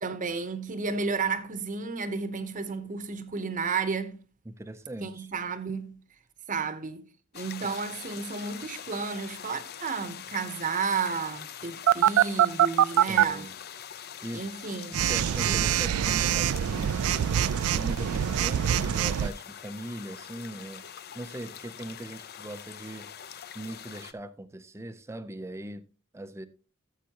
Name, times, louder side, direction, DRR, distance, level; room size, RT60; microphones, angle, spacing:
voice 1, 0.0-4.2 5.0-6.0 6.5-7.1 7.3-13.5 14.3-15.2 15.4-15.6, right 5 dB, 40° right, 0.8 m, -32 dB
voice 2, 4.5-5.3 13.0-13.5 14.2-14.4 14.9-17.3 17.7-20.8 21.1-25.8 26.1-26.5, right 1 dB, 15° right, 0.4 m, -40 dB
sound 1, 7.3-24.1, left 9 dB, 50° left, 0.5 m, -44 dB
Telephone, 11.9-13.2 14.9-19.3, right 10 dB, 85° right, 0.3 m, -24 dB
13.0 x 7.3 x 2.8 m
head